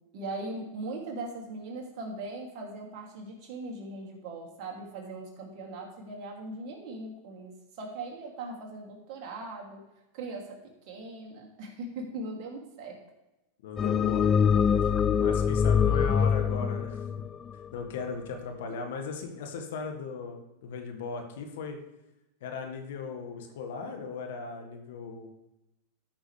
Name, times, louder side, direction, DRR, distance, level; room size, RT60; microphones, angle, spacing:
voice 1, 0.1-7.5 7.8-9.8 10.1-10.6 10.9-13.0 15.9-16.7, right 2 dB, 50° right, -1 dB, 2.7 m, -40 dB
voice 2, 13.6-14.3 15.2-17.0 17.7-21.8 22.4-25.3, left 5 dB, 70° left, 4 dB, 1.6 m, -37 dB
sound 1, 13.8-18.2, left 7 dB, 25° left, 0.3 m, -24 dB
13.5 x 6.2 x 3.4 m, 0.96 s
hypercardioid pair, 100°, 0 cm